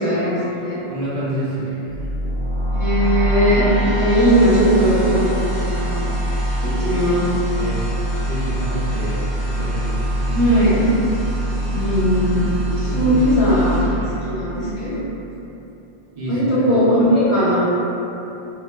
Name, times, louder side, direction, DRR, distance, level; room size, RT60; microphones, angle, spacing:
voice 1, 0.0-0.8 2.7-6.0 6.6-7.3 10.3-10.8 11.7-12.5 12.8-13.8 14.2-15.0 16.3-17.6, equal, 30° left, -15 dB, 0.9 m, -18 dB
voice 2, 0.9-2.1 7.6-7.8 8.2-9.2 9.4-10.4 11.4-11.5 12.9-13.2 16.1-16.6, right 1 dB, 40° right, -9 dB, 0.6 m, -28 dB
sound 1, 1.9-15.0, equal, 50° left, 0.3 m, -23 dB
2.9 x 2.3 x 2.3 m, 2.9 s
omnidirectional pair, 1.1 m